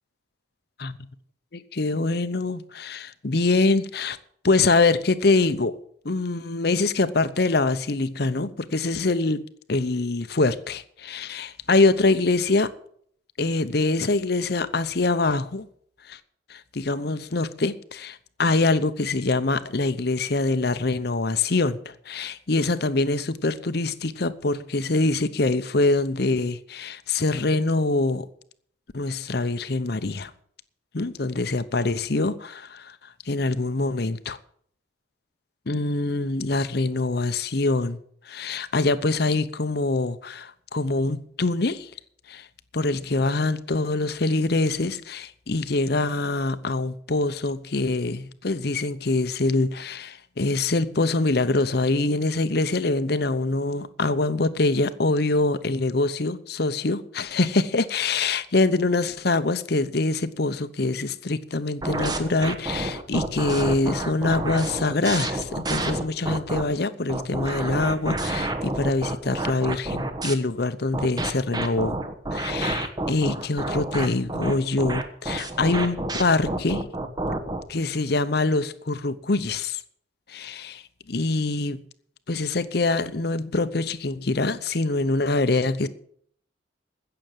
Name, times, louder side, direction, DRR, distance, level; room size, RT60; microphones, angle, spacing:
voice 1, 1.5-4.2 4.4-5.8 6.0-9.4 9.7-12.7 13.4-15.7 16.1-16.2 16.5-28.2 28.9-30.3 30.9-33.0 33.3-34.4 35.7-38.0 38.3-41.9 42.3-42.5 42.7-72.0 72.3-76.9 77.7-79.8 80.3-81.8 82.3-85.9, left 3 dB, 55° left, 0.8 m, -24 dB
sound 1, 61.8-66.6 67.1-70.3 70.9-77.6, right 2 dB, 20° right, 1.1 m, -29 dB
16.0 x 6.9 x 7.6 m
head